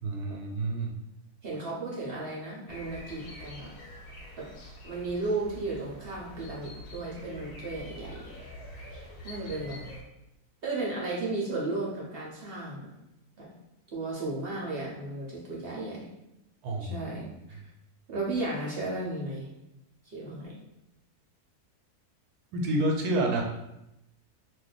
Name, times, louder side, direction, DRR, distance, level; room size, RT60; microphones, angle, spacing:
voice 1, 0.0-0.9 16.6-17.0 22.5-23.4, right 1 dB, 85° right, 2 dB, 1.1 m, -28 dB
voice 2, 1.4-3.7 4.4-4.5 4.8-8.4 8.7-9.8 10.6-12.9 13.4-13.5 13.9-16.1 16.8-17.6 18.1-19.5 20.0-20.5, right 2 dB, 55° right, -4 dB, 0.7 m, -34 dB
sound 1, 2.7-10.0, left 1 dB, 80° left, 1.2 m, -45 dB
2.5 x 2.1 x 3.9 m, 0.88 s
omnidirectional pair, 1.6 m